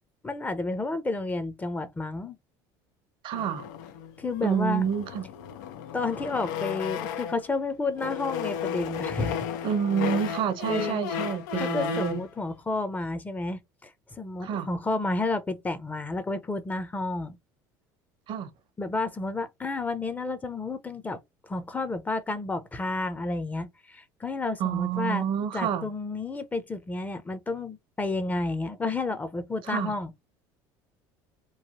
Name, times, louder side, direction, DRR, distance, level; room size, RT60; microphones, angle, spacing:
voice 1, 0.2-2.4 4.2-4.9 5.9-9.5 10.6-11.0 11.6-13.9 14.2-17.4 18.8-21.2 21.4-25.3 25.5-30.1, left 3 dB, 15° left, 0.6 m, -31 dB
voice 2, 3.2-3.7 4.4-5.2 9.6-12.2 14.4-14.7 18.3-18.5 24.6-25.9 29.7-29.9, right 8 dB, 55° right, 0.7 m, -28 dB
sound 1, 3.3-7.5 7.9-12.3, left 8 dB, 85° left, 0.5 m, -34 dB
3.1 x 2.1 x 2.9 m
supercardioid pair, 100°, 10 cm